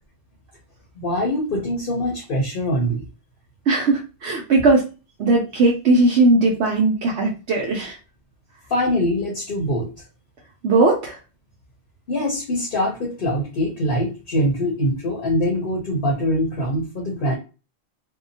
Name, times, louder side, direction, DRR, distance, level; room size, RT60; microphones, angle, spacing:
voice 1, 1.0-3.1 8.7-9.9 12.1-17.4, equal, 55° left, -1 dB, 0.9 m, -23 dB
voice 2, 3.7-4.9 5.2-8.0 10.6-11.2, right 2 dB, 70° right, -1 dB, 0.8 m, -18 dB
2.7 x 2.1 x 2.6 m, 0.31 s
omnidirectional pair, 1.2 m